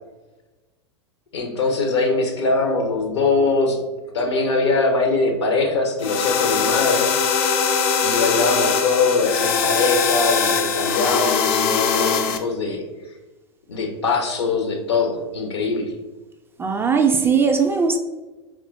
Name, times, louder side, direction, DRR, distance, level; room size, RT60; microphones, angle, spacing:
voice 1, 1.3-7.1 8.0-13.2 13.7-15.9, left 3 dB, 70° left, 4 dB, 0.9 m, -22 dB
sound 1, 6.0-12.4, left 6 dB, 45° left, 0.5 m, -21 dB
voice 2, 16.6-18.0, right 5 dB, 15° right, 5 dB, 0.3 m, -19 dB
3.6 x 3.0 x 3.9 m, 1.2 s
figure-of-eight pair, 90°, 15 cm